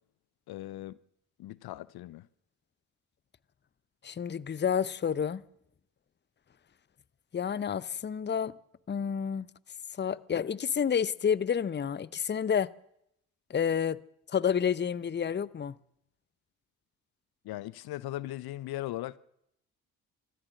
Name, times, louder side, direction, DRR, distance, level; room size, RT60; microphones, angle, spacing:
voice 1, 0.5-1.0 1.4-2.3 17.4-19.2, left 15 dB, 60° left, 0.7 m, -38 dB
voice 2, 4.0-5.4 7.3-8.6 8.9-9.5 10.0-12.7 13.5-14.0 14.3-15.7, left 7 dB, 25° left, 0.7 m, -29 dB
25.0 x 14.0 x 7.6 m
hypercardioid pair, 45°, 42 cm